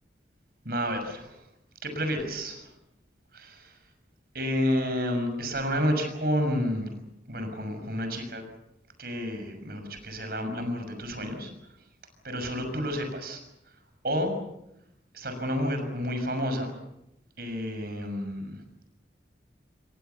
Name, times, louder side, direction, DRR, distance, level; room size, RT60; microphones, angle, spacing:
voice 1, 0.6-1.4 1.8-2.7 3.3-3.7 4.3-7.0 7.3-8.4 9.0-11.5 12.2-13.4 14.0-14.3 15.1-16.7 17.4-18.6, equal, 60° right, 7 dB, 6.4 m, -30 dB
28.0 x 22.0 x 7.1 m, 0.84 s
head